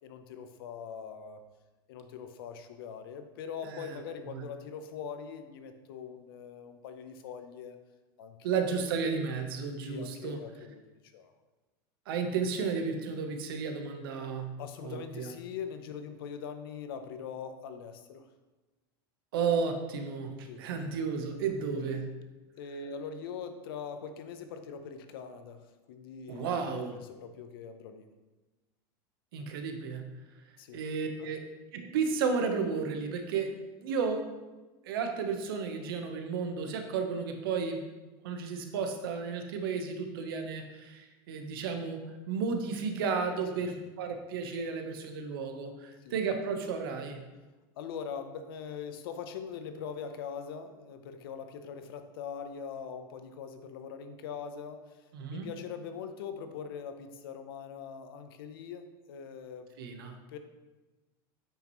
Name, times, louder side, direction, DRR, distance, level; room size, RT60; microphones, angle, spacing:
voice 1, 0.0-1.4 1.9-7.8 8.2-8.9 9.8-11.3 14.6-18.2 20.5-20.7 22.6-28.0 30.6-30.8 31.2-31.3 43.6-43.7 46.0-46.2 47.8-59.7 60.3-60.4, left 6 dB, 85° left, 8 dB, 0.8 m, -42 dB
voice 2, 3.6-4.0 4.3-4.4 8.4-10.4 12.1-15.3 19.3-22.2 26.3-27.0 29.3-30.2 30.7-31.4 31.7-34.3 34.8-37.8 38.2-47.3 55.1-55.5 59.8-60.2, right 5 dB, 85° right, 5 dB, 1.1 m, -33 dB
8.8 x 5.7 x 3.1 m, 1.2 s
supercardioid pair, 135°, 12 cm